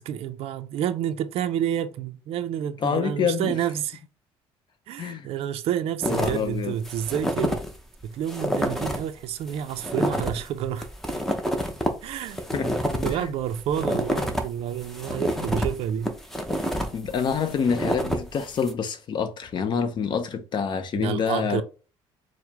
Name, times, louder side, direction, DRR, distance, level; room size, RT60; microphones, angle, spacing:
voice 1, 0.0-4.0 4.9-7.6 8.0-10.9 12.0-12.4 13.0-16.1 20.9-21.6, right 10 dB, 65° right, 0.4 m, -29 dB
voice 2, 2.8-3.6 5.0-5.3 6.1-6.8 12.5-12.7 13.0-13.3 16.9-21.6, left 6 dB, 45° left, 0.7 m, -27 dB
sound 1, 6.0-6.5 6.8-7.7 8.0-8.1 8.3-9.1 9.5-14.4 14.8-18.7, equal, 5° left, 0.6 m, -28 dB
4.6 x 2.0 x 3.4 m
cardioid pair, 115°, 11 cm